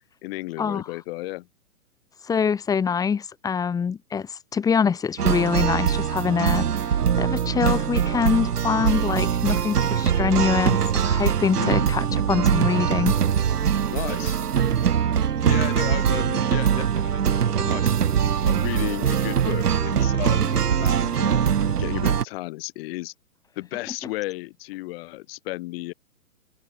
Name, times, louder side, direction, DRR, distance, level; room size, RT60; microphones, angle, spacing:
voice 1, 0.2-1.5 8.7-9.0 11.5-11.9 13.9-14.4 15.4-17.9 18.4-23.1 23.6-25.9, left 20 dB, 40° left, 4.7 m, -34 dB
voice 2, 2.3-13.2, left 6 dB, 10° left, 1.2 m, -24 dB
sound 1, 5.2-22.2, right 8 dB, 85° right, 1.4 m, -22 dB
open air
hypercardioid pair, 140°, 45 cm